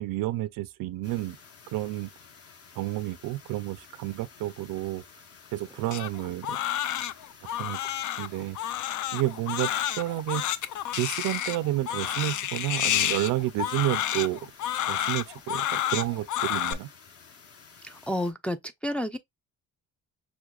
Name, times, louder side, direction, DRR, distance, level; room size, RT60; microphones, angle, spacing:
voice 1, 0.0-1.4 1.7-2.1 2.8-5.0 5.5-6.6 7.6-7.8 8.2-8.6 9.1-9.7 10.0-10.4 11.0-14.4 14.9-16.9, right 16 dB, 80° right, 0.5 m, -30 dB
sound 1, 1.0-18.3, left 5 dB, 45° left, 0.9 m, -52 dB
Crying sobbing, 5.9-16.7, left 11 dB, 65° left, 0.5 m, -30 dB
voice 2, 17.8-19.2, left 1 dB, 5° left, 0.3 m, -31 dB
5.9 x 2.2 x 2.3 m
cardioid pair, 95°, 32 cm